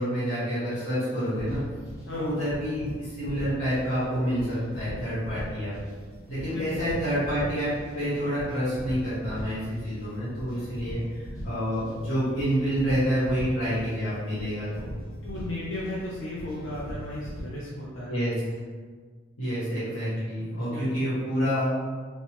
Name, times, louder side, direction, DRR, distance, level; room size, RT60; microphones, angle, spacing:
voice 1, 0.0-1.6 2.1-5.7 6.3-14.9 18.1-18.3 19.4-21.7, equal, 85° left, -11 dB, 1.1 m, -28 dB
sound 1, 1.2-17.4, equal, 15° left, 0.7 m, -40 dB
voice 2, 15.2-18.1 20.4-20.9, left 1 dB, 65° left, -7 dB, 0.5 m, -36 dB
3.3 x 2.0 x 3.0 m, 1.6 s
head